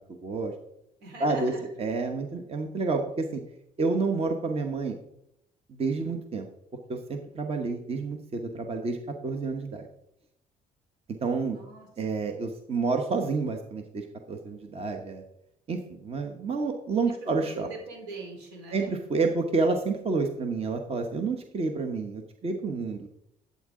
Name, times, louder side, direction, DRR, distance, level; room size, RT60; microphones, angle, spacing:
voice 1, 0.1-0.5 1.2-3.4 3.8-5.0 5.7-6.5 6.9-9.0 9.2-9.9 11.1-11.6 12.0-15.2 15.7-17.7 18.7-23.1, right 4 dB, 35° right, 4 dB, 1.1 m, -29 dB
voice 2, 1.0-1.7 11.5-12.2 17.1-18.9, right 3 dB, 85° right, 0 dB, 4.1 m, -43 dB
12.0 x 8.6 x 3.8 m, 0.78 s
cardioid pair, 110°, 17 cm